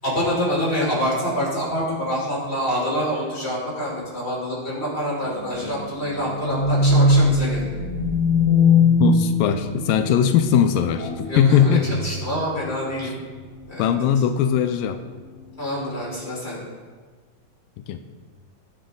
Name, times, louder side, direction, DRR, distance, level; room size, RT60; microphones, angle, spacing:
voice 1, 0.0-7.7 11.3-13.1 13.7-13.9 15.6-16.6, equal, 15° left, -5 dB, 5.1 m, -26 dB
sound 1, 5.2-10.3 10.9-11.4 11.7-12.4 12.9-13.1 13.5-13.6, left 2 dB, 75° left, 4.1 m, -20 dB
voice 2, 9.0-11.9 13.0-13.1 13.8-15.0 17.8-18.0, left 8 dB, 90° left, 8 dB, 2.4 m, -20 dB
19.0 x 9.9 x 3.9 m, 1.5 s
omnidirectional pair, 4.0 m